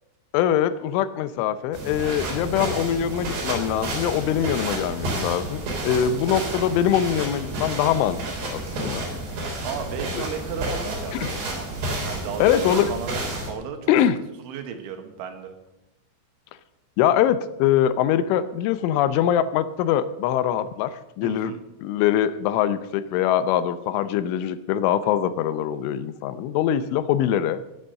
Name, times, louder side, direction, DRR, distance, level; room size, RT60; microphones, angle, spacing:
voice 1, 0.3-9.1 10.2-10.3 11.1-11.3 12.4-13.0 13.9-14.2 17.0-21.5 21.8-27.6, left 10 dB, 80° left, 13 dB, 3.1 m, -23 dB
sound 1, 1.7-13.5, right 1 dB, 60° right, 5.7 m, -30 dB
voice 2, 6.0-6.4 9.6-11.7 12.0-12.5 12.9-13.2 13.4-13.9 14.4-15.5 21.2-21.6, right 6 dB, 75° right, 6 dB, 3.7 m, -34 dB
19.5 x 7.9 x 6.5 m, 0.94 s
omnidirectional pair, 5.7 m